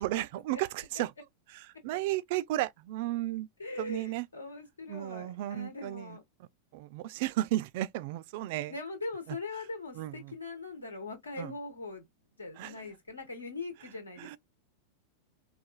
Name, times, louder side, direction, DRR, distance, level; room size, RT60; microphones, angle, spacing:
voice 1, 0.0-1.1 1.5-3.5 3.8-4.3 4.9-8.7 9.9-10.3 11.4-11.5 12.6-12.8 14.2-14.4, right 15 dB, 50° right, 0.3 m, -34 dB
voice 2, 3.6-6.2 8.7-12.1 12.4-14.4, left 3 dB, 75° left, 1.1 m, -41 dB
4.1 x 2.3 x 2.2 m
figure-of-eight pair, 90°, 0 cm